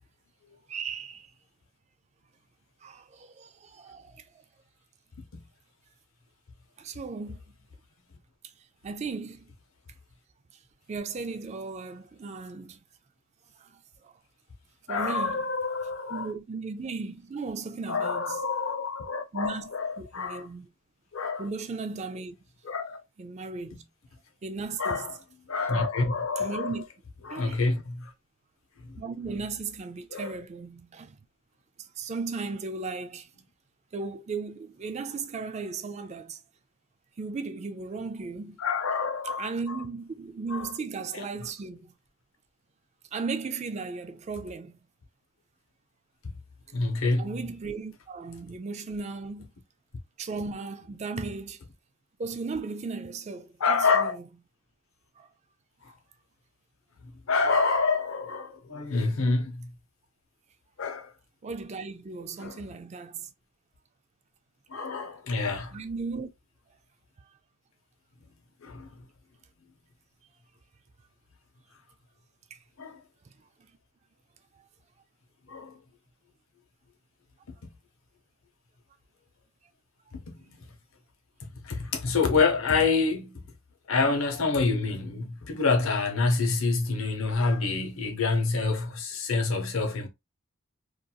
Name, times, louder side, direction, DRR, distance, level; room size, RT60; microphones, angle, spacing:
voice 1, 0.7-1.3 2.8-4.4 6.8-7.6 8.4-8.5 8.8-9.5 10.9-12.8 13.6-14.2 14.9-15.4 16.1-18.4 19.3-19.7 20.0-20.7 21.4-22.4 23.2-23.8 24.4-25.1 26.4-26.8 27.3-27.6 29.0-31.2 31.8-33.3 33.9-36.4 37.2-38.6 39.4-41.9 43.1-44.8 47.1-49.5 50.2-51.6 52.2-54.2 55.2-55.3 55.9-56.0 61.4-63.3 65.7-66.3 67.2-67.3 72.5-72.6 73.6-73.7, right 4 dB, 30° right, 0.3 m, -36 dB
voice 2, 14.9-16.3 17.9-20.5 21.1-21.5 22.6-23.0 23.7-23.8 24.8-25.1 25.5-26.7 27.2-28.1 28.8-29.0 30.1-30.3 38.6-39.8 40.5-40.7 41.1-41.2 46.7-47.3 53.6-54.2 57.0-59.7 60.8-61.1 62.4-62.6 64.7-65.8 68.6-69.0 72.8-73.0 75.5-75.8 77.6-77.7 80.1-80.6 81.6-83.4 83.9-90.1, left 4 dB, 75° left, 0.7 m, -27 dB
2.8 x 2.5 x 2.3 m
head